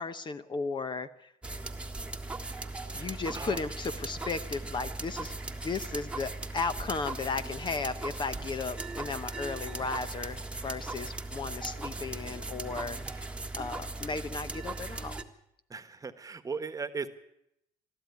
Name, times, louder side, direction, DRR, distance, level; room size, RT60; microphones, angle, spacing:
voice 1, 0.0-1.3 2.9-15.1, left 4 dB, 30° left, 12 dB, 0.9 m, -35 dB
sound 1, 1.4-15.2, right 2 dB, 5° right, 1.6 m, -38 dB
voice 2, 2.9-3.6 15.7-17.1, right 5 dB, 25° right, 11 dB, 1.4 m, -38 dB
22.0 x 13.0 x 9.5 m, 0.80 s
cardioid pair, 105°, 15 cm